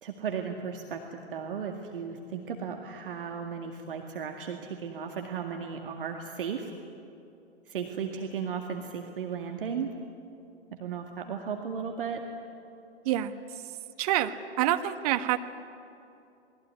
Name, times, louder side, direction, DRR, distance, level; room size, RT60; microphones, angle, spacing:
voice 1, 0.0-6.7 7.7-9.9 10.8-12.3, right 6 dB, 55° right, 3 dB, 2.1 m, -35 dB
voice 2, 13.0-13.6 14.0-15.4, right 12 dB, 35° right, 8 dB, 1.4 m, -27 dB
28.0 x 21.0 x 9.7 m, 2.7 s
figure-of-eight pair, 110°, 32 cm